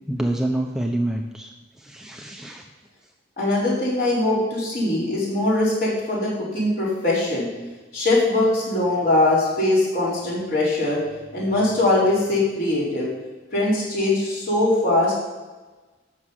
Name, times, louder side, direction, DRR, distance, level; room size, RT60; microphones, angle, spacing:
voice 1, 0.1-1.5 1.8-2.6, right 1 dB, 5° right, 1 dB, 0.7 m, -27 dB
voice 2, 3.4-7.5 7.9-11.0 11.3-13.1 13.5-15.2, left 2 dB, 50° left, -6 dB, 4.7 m, -21 dB
12.5 x 6.4 x 7.4 m, 1.2 s
head